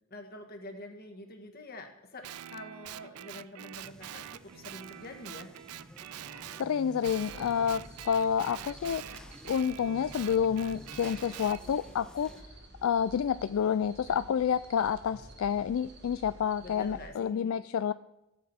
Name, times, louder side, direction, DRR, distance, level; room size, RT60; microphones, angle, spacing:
voice 1, 0.1-5.5 14.1-14.3 16.6-17.6, left 1 dB, 45° left, 4 dB, 1.5 m, -46 dB
Guitar, 2.2-6.7 7.0-11.6, right 12 dB, 80° right, 0.4 m, -45 dB
sound 1, 3.8-12.4, equal, 5° left, 0.5 m, -52 dB
voice 2, 6.3-12.4 12.8-17.9, left 7 dB, 65° left, 13 dB, 0.3 m, -29 dB
sound 2, 7.0-17.1, right 1 dB, 50° right, 1.5 m, -51 dB
14.5 x 8.4 x 4.3 m, 0.91 s
head